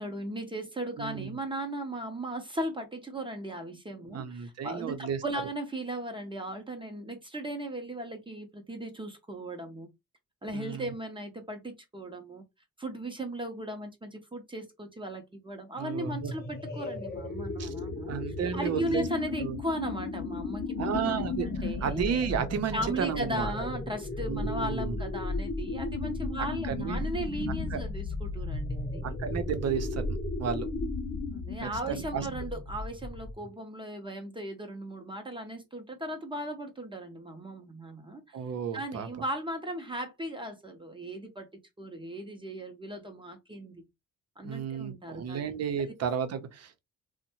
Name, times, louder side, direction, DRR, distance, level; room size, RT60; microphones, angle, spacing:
voice 1, 0.0-9.9 10.4-12.4 12.8-18.2 18.5-22.0 22.7-29.2 31.3-38.4 38.7-41.5 41.8-43.8 44.4-45.4 45.8-45.9, right 1 dB, 15° right, 0.7 m, -37 dB
voice 2, 1.0-1.3 4.1-5.2 10.5-10.8 15.8-16.3 17.6-17.7 18.1-19.1 19.4-19.6 20.8-23.5 24.3-25.0 26.7-27.0 27.7-27.8 29.0-30.0 30.4-30.7 31.6-32.3 38.3-39.1 44.4-46.8, right 7 dB, 55° right, 0.7 m, -33 dB
sound 1, 15.9-33.5, left 3 dB, 30° left, 0.7 m, -35 dB
2.6 x 2.2 x 2.8 m
cardioid pair, 90°, 30 cm